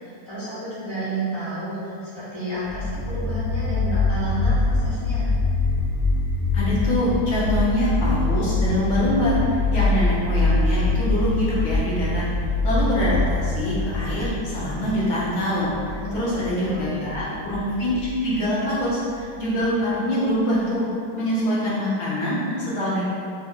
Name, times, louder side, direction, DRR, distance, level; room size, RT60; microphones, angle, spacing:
voice 1, 0.0-5.3 16.0-16.9, right 1 dB, 25° left, -11 dB, 0.7 m, -31 dB
sound 1, 2.6-19.7, left 2 dB, 55° right, 0.8 m, -24 dB
voice 2, 6.5-12.3 12.6-20.8 21.2-23.0, left 1 dB, 55° left, -8 dB, 0.9 m, -24 dB
3.1 x 2.1 x 3.6 m, 2.3 s
omnidirectional pair, 1.8 m